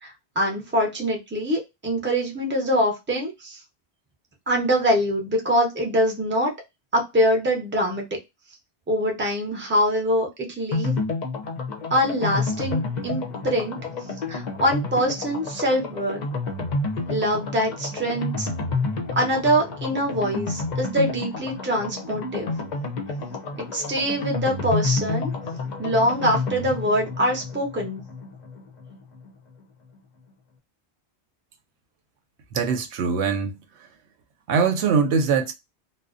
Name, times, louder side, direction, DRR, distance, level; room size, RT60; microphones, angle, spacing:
voice 1, 0.0-3.6 4.5-6.5 6.9-8.2 8.9-11.0 11.9-13.8 14.3-16.2 17.1-18.5 19.2-22.5 23.6-25.3 25.8-28.0, equal, 15° right, 0.6 m, -24 dB
sound 1, 10.7-29.3 29.6-29.7 29.9-30.0, left 3 dB, 50° left, 0.6 m, -30 dB
voice 2, 32.5-33.6 34.5-35.5, right 5 dB, 90° right, 0.9 m, -22 dB
2.5 x 2.0 x 2.4 m
omnidirectional pair, 1.1 m